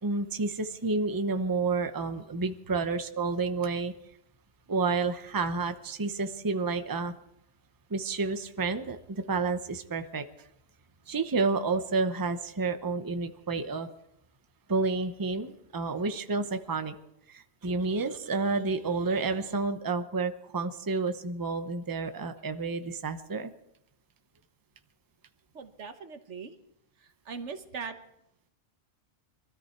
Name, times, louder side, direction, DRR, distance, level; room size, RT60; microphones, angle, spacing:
voice 1, 0.0-3.9 4.7-7.1 7.9-10.2 11.1-13.9 14.7-16.9 17.3-23.5, right 3 dB, 20° right, 8 dB, 0.8 m, -30 dB
voice 2, 25.5-26.5 27.0-28.0, right 5 dB, 80° right, 8 dB, 1.5 m, -40 dB
23.0 x 13.5 x 4.5 m, 0.78 s
omnidirectional pair, 1.2 m